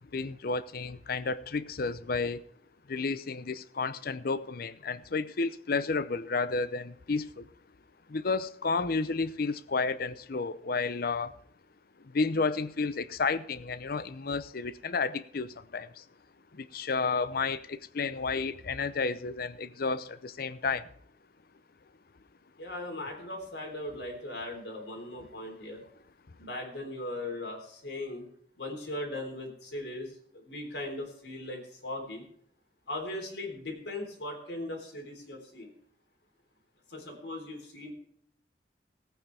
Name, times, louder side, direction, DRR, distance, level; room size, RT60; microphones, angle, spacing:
voice 1, 0.1-2.4 2.9-7.5 8.1-11.4 12.0-16.0 16.5-20.9, left 4 dB, 60° left, 0.7 m, -31 dB
voice 2, 22.6-25.8 26.4-28.3 28.6-32.3 32.9-35.7 36.9-37.9, left 1 dB, 75° left, 3.8 m, -39 dB
18.0 x 9.2 x 3.4 m
head